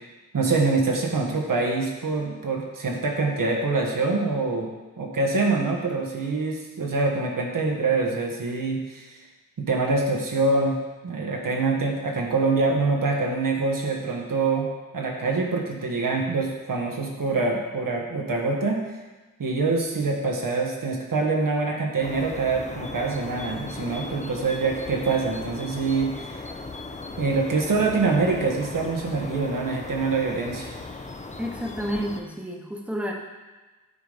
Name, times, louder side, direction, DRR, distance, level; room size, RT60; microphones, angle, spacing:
voice 1, 0.3-4.7 5.0-9.1 9.6-10.8 11.0-14.7 14.9-18.8 19.4-26.3 27.2-30.7, right 3 dB, 75° right, 0 dB, 1.3 m, -25 dB
sound 1, 22.0-32.2, left 3 dB, 20° left, 0.6 m, -37 dB
voice 2, 31.4-33.1, equal, 5° right, 0 dB, 1.0 m, -30 dB
9.0 x 3.9 x 5.0 m, 1.2 s
wide cardioid pair, 85°, 33 cm